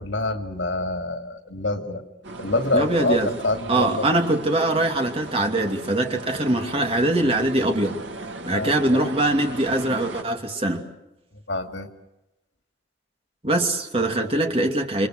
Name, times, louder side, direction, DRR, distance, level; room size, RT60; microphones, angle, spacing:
voice 1, 0.0-2.0 2.4-4.2 8.5-9.0 11.5-11.9, left 2 dB, 85° left, 5 dB, 2.6 m, -26 dB
sound 1, 2.2-10.2, right 2 dB, 85° right, 2.3 m, -37 dB
voice 2, 2.7-3.3 3.7-8.0 8.4-10.8 13.4-15.1, right 1 dB, 30° right, 3 dB, 2.6 m, -22 dB
29.0 x 25.0 x 6.4 m, 0.95 s
head